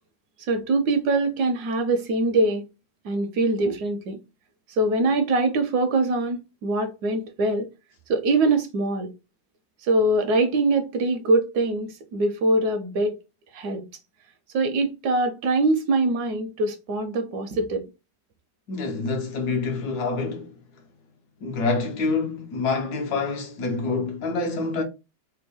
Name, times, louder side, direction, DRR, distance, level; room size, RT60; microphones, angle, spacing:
voice 1, 0.4-2.6 3.0-4.2 4.7-7.7 8.1-9.1 9.8-13.1 13.5-13.8 14.5-17.9, right 2 dB, 75° right, 1.0 m, -23 dB
voice 2, 18.7-20.5 21.4-24.8, left 3 dB, 65° left, 1.2 m, -26 dB
3.5 x 2.2 x 3.3 m
omnidirectional pair, 2.0 m